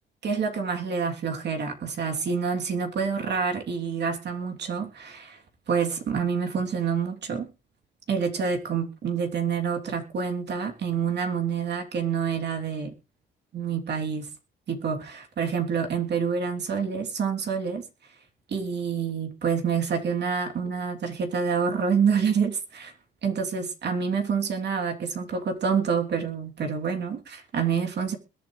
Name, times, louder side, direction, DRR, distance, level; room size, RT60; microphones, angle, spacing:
voice 1, 0.2-5.4 5.7-7.5 8.1-12.9 13.5-14.3 14.7-17.8 18.5-22.9 23.2-28.2, right 6 dB, 60° right, 3.1 m, -27 dB
21.5 x 8.8 x 3.2 m
cardioid pair, 90°, 20 cm